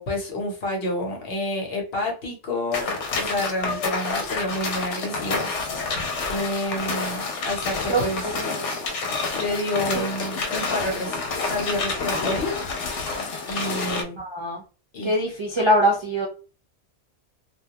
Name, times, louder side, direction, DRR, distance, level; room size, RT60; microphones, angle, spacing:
voice 1, 0.0-2.9 3.2-6.0 6.3-8.3 9.3-12.5 13.5-14.2 14.9-15.1, left 1 dB, 60° left, 0 dB, 1.0 m, -29 dB
sound 1, 2.7-14.0, left 4 dB, 85° left, 0.9 m, -28 dB
voice 2, 8.3-8.7 9.9-10.1 14.2-14.6 15.0-16.3, equal, 45° right, -3 dB, 0.4 m, -23 dB
2.2 x 2.1 x 2.8 m, 0.35 s
omnidirectional pair, 1.2 m